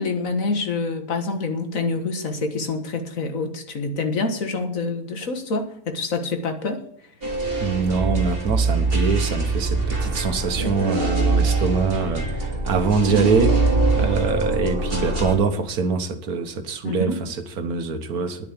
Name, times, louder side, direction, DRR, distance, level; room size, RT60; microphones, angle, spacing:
voice 1, 0.0-6.8 16.8-17.2, left 3 dB, 60° left, 1.9 m, -26 dB
sound 1, 7.2-15.3, right 3 dB, 35° right, 2.9 m, -23 dB
voice 2, 7.6-18.5, right 4 dB, 80° right, 1.7 m, -24 dB
10.0 x 9.2 x 8.4 m
omnidirectional pair, 1.6 m